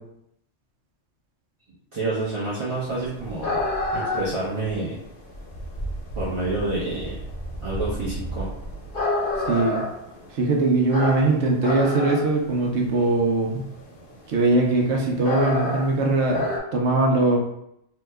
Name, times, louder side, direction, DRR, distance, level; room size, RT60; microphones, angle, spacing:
voice 1, 1.9-3.6 3.9-5.0 6.1-7.2 7.6-8.5, right 2 dB, 35° right, -9 dB, 0.6 m, -28 dB
sound 1, 2.9-16.6, left 2 dB, 50° left, 0.9 m, -29 dB
voice 2, 9.5-9.8 10.3-13.6 14.3-16.4 16.7-17.4, right 2 dB, 70° right, 0 dB, 0.9 m, -21 dB
2.9 x 2.1 x 3.4 m, 0.77 s
omnidirectional pair, 1.3 m